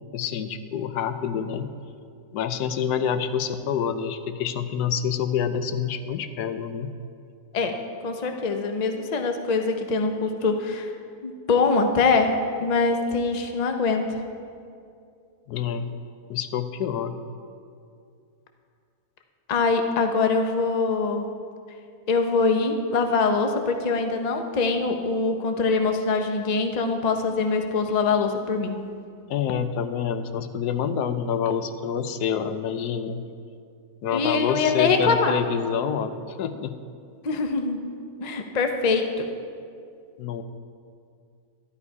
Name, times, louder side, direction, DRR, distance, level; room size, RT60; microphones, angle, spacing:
voice 1, 0.1-1.7 2.3-6.9 15.5-15.9 16.3-17.2 29.3-33.2 34.0-36.8 40.2-40.4, left 7 dB, 85° left, 10 dB, 1.2 m, -27 dB
voice 2, 7.5-10.9 11.2-14.1 19.5-21.2 22.1-28.9 34.1-35.4 37.2-37.9 38.2-39.3, left 4 dB, 35° left, 5 dB, 0.7 m, -23 dB
12.5 x 11.5 x 4.7 m, 2.4 s
omnidirectional pair, 1.7 m